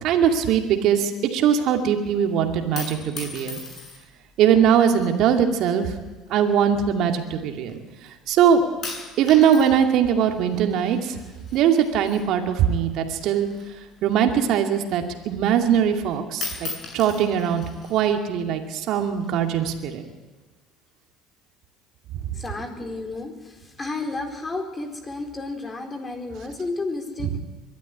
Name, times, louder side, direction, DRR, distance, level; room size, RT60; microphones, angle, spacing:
voice 1, 0.0-3.6 4.4-5.9 6.3-7.8 8.3-8.6 9.2-11.2 11.5-13.5 14.0-16.7 16.9-17.6 17.9-20.0 27.2-27.4, right 8 dB, 60° right, 4 dB, 2.4 m, -21 dB
sound 1, 2.5-4.2 5.1-5.5 6.3-7.7 8.1-8.4 8.8-12.9 13.2-14.8 15.2-15.3 15.7-16.1 16.3-18.1 18.9-19.5, left 4 dB, 45° left, 7.8 m, -38 dB
voice 2, 22.3-27.4, left 3 dB, 25° left, 4 dB, 4.5 m, -32 dB
23.0 x 12.5 x 9.9 m, 1.2 s
hypercardioid pair, 70°, 0 cm